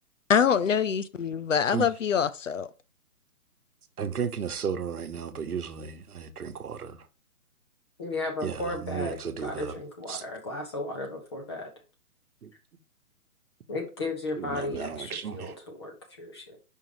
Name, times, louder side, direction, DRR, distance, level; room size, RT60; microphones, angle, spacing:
voice 1, 0.3-2.7, left 7 dB, 55° left, 0.5 m, -24 dB
voice 2, 4.0-7.1 8.4-9.7 10.1-10.2 12.4-12.5 14.4-15.5, right 7 dB, 75° right, 1.1 m, -34 dB
voice 3, 8.0-11.7 13.7-16.6, left 2 dB, 20° left, 0.9 m, -35 dB
5.4 x 5.1 x 4.9 m
hypercardioid pair, 165°, 45 cm